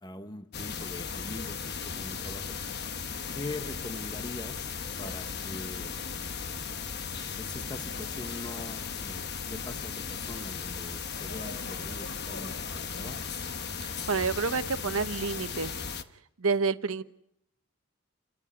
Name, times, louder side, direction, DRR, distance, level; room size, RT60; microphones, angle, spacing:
voice 1, 0.0-2.6 3.3-4.7 5.0-6.0 7.1-13.2, left 2 dB, 20° left, 9 dB, 1.1 m, -42 dB
sound 1, 0.5-16.0, left 6 dB, 50° left, 1.1 m, -36 dB
voice 2, 13.8-15.8 16.4-17.0, right 4 dB, 70° right, 11 dB, 1.1 m, -29 dB
28.5 x 14.5 x 9.9 m, 0.76 s
head